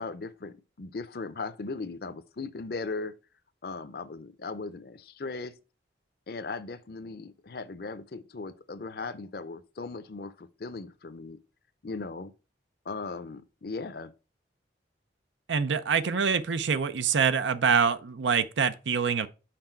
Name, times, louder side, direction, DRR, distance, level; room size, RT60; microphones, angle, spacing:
voice 1, 0.0-3.1 3.6-5.5 6.3-11.4 11.8-12.3 12.9-14.1, left 3 dB, 55° left, 0.6 m, -38 dB
voice 2, 15.5-19.3, right 6 dB, 85° right, 0.6 m, -25 dB
6.0 x 4.8 x 4.4 m
head